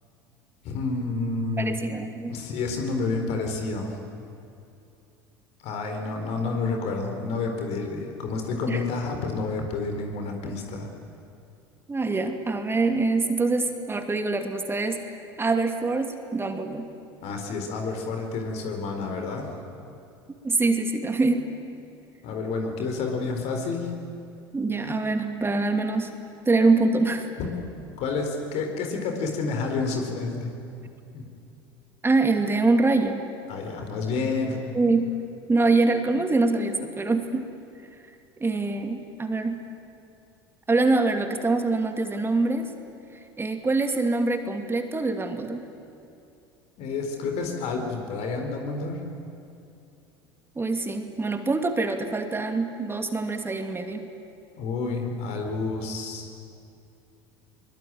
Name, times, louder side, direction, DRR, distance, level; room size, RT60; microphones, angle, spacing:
voice 1, 0.6-1.8 2.3-3.9 5.6-10.9 17.2-19.6 22.2-23.9 27.4-27.5 28.0-30.5 31.1-31.3 33.5-34.6 46.8-49.0 54.6-56.3, left 4 dB, 55° left, 3 dB, 4.3 m, -29 dB
voice 2, 1.6-2.4 8.7-8.8 11.9-16.9 20.4-21.5 24.5-26.2 26.5-27.3 32.0-33.2 34.7-35.1 35.5-37.5 38.4-39.6 40.7-42.7 43.4-45.7 50.6-54.1, right 3 dB, 20° right, 6 dB, 2.5 m, -24 dB
23.0 x 21.5 x 9.1 m, 2.6 s
hypercardioid pair, 75°, 13 cm